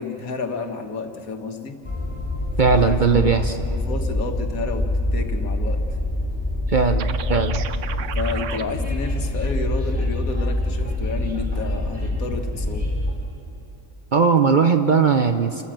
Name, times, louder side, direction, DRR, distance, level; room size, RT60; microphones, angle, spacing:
voice 1, 0.0-1.8 2.6-5.8 8.2-12.9, left 4 dB, 85° left, 5 dB, 1.8 m, -31 dB
Train, 1.8-13.1, left 1 dB, 5° right, 4.9 m, -25 dB
voice 2, 2.6-3.5 6.7-7.6 14.1-15.6, right 5 dB, 45° right, 7 dB, 0.7 m, -18 dB
sound 1, 7.0-8.6, right 9 dB, 65° right, 1.0 m, -33 dB
28.5 x 14.0 x 7.4 m, 3.0 s
omnidirectional pair, 1.4 m